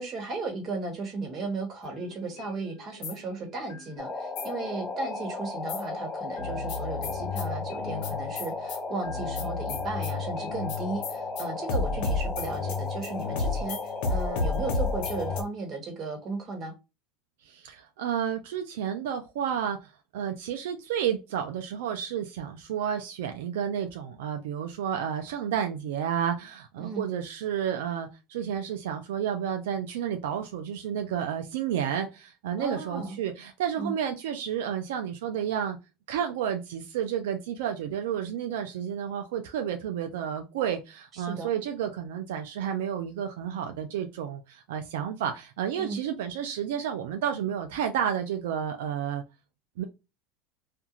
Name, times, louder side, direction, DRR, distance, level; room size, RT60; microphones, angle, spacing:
voice 1, 0.0-16.7 26.8-27.0 32.6-33.2 33.8-33.9 41.1-41.5 45.8-46.0, right 3 dB, 35° right, 1.2 m, -35 dB
sound 1, 1.8-3.9 4.4-5.9 6.4-15.4, left 4 dB, 65° left, 0.8 m, -33 dB
sound 2, 4.0-15.4, left 3 dB, 15° left, 0.5 m, -35 dB
voice 2, 17.4-35.8 36.1-49.2 49.8-49.9, right 9 dB, 85° right, 0.4 m, -31 dB
2.5 x 2.3 x 2.9 m
supercardioid pair, 120°, 0 cm